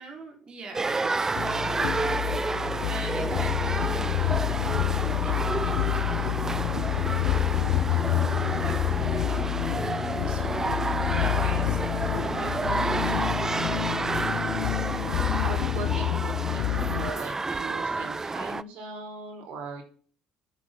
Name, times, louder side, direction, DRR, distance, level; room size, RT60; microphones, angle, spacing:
voice 1, 0.0-2.1 2.9-7.9 8.6-9.7 10.1-13.8, right 3 dB, 40° right, 1 dB, 4.4 m, -44 dB
sound 1, 0.7-18.6, right 3 dB, 20° right, 0.6 m, -30 dB
voice 2, 1.0-1.3 14.7-19.8, right 4 dB, 60° right, 3 dB, 4.1 m, -39 dB
sound 2, 1.4-17.1, left 14 dB, 65° left, 0.5 m, -28 dB
sound 3, 5.9-15.6, equal, ahead, 3.0 m, -41 dB
10.5 x 10.0 x 3.8 m, 0.43 s
hypercardioid pair, 60°, 2 cm